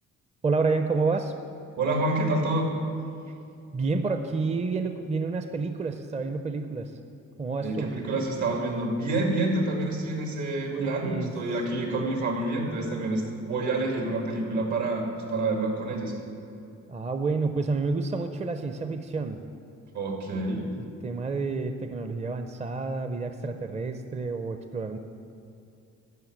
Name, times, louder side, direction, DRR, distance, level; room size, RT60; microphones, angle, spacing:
voice 1, 0.4-1.3 3.7-6.9 7.4-7.9 10.7-11.3 16.9-19.4 20.8-25.0, right 4 dB, 20° right, 8 dB, 0.6 m, -29 dB
voice 2, 1.8-2.7 7.6-16.2 19.9-20.6, right 2 dB, 75° right, 1 dB, 2.4 m, -28 dB
12.5 x 5.6 x 8.0 m, 2.6 s
cardioid pair, 90°, 30 cm